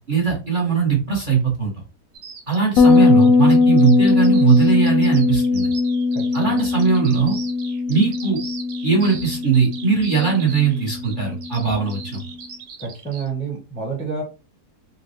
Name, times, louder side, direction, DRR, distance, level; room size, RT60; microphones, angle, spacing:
voice 1, 0.1-1.7 2.5-5.7 6.3-7.3 7.9-8.4 8.8-12.2, right 6 dB, 35° right, -2 dB, 1.0 m, -19 dB
Bird vocalization bird call bird song, 2.1-13.3, right 5 dB, 90° right, 1.4 m, -39 dB
Bass guitar, 2.8-12.1, left 4 dB, 70° left, 0.9 m, -19 dB
voice 2, 6.1-6.6 12.8-14.2, right 5 dB, 5° left, -1 dB, 0.7 m, -29 dB
4.0 x 2.2 x 2.7 m, 0.32 s
omnidirectional pair, 1.7 m